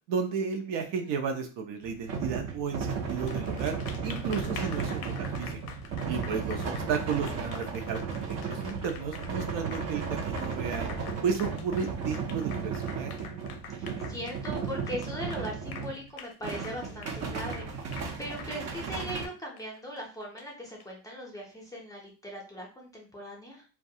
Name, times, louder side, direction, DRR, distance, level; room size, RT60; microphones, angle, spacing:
voice 1, 0.1-5.6 6.1-10.9 11.2-13.1, right 6 dB, 70° right, 4 dB, 0.7 m, -33 dB
sound 1, 1.8-16.0 16.4-19.3, right 5 dB, 35° right, 0.5 m, -35 dB
Applause, 3.1-20.8, left 7 dB, 55° left, 0.5 m, -46 dB
voice 2, 13.8-23.6, equal, 10° left, -1 dB, 0.5 m, -40 dB
2.3 x 2.2 x 2.7 m, 0.34 s
cardioid pair, 120°, 44 cm